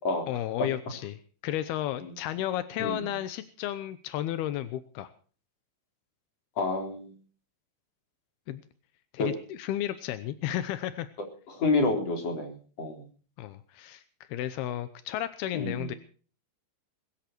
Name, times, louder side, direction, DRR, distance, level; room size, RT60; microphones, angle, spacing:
voice 1, 0.3-5.1 8.5-8.6 9.1-11.1 13.4-14.0 14.3-16.0, left 12 dB, 85° left, 12 dB, 2.9 m, -33 dB
voice 2, 6.6-7.1 9.2-9.3 11.5-13.1 15.5-15.9, left 3 dB, 40° left, 3 dB, 4.8 m, -29 dB
21.5 x 13.5 x 4.5 m, 0.41 s
omnidirectional pair, 4.4 m